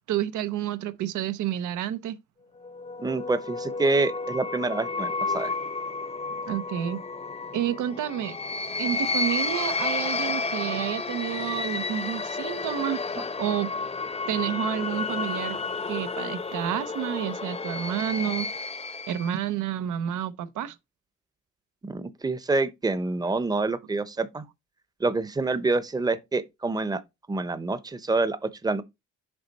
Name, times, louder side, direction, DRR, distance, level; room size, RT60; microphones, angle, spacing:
voice 1, 0.1-2.2 6.5-7.0 7.5-8.4 8.8-13.0 13.4-13.7 14.3-15.6 15.8-18.5 19.1-20.8, right 11 dB, 80° right, 0.8 m, -29 dB
sound 1, 2.6-19.4, left 3 dB, 20° left, 0.7 m, -31 dB
voice 2, 3.0-5.5 13.2-13.3 21.8-24.4 25.0-27.0 27.3-28.8, right 3 dB, 15° right, 0.8 m, -27 dB
6.8 x 4.1 x 4.0 m
cardioid pair, 90°, 30 cm